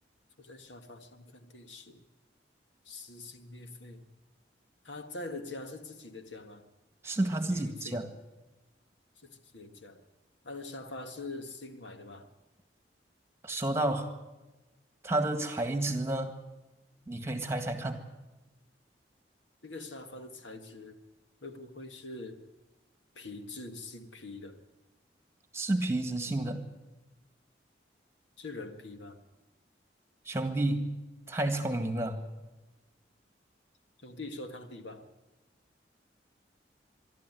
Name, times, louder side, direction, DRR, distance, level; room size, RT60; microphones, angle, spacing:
voice 1, 0.4-2.0 2.9-4.0 4.8-6.7 7.5-8.0 9.2-10.0 10.4-12.3 19.6-21.0 21.4-22.4 23.1-24.6 28.4-29.2 34.0-35.1, left 2 dB, 85° left, 7 dB, 1.8 m, -44 dB
voice 2, 7.0-8.1 13.4-14.1 15.0-16.4 17.1-18.0 25.5-26.6 30.3-31.0 31.3-32.2, right 1 dB, 15° right, 7 dB, 1.8 m, -30 dB
24.5 x 12.0 x 9.4 m, 1.1 s
head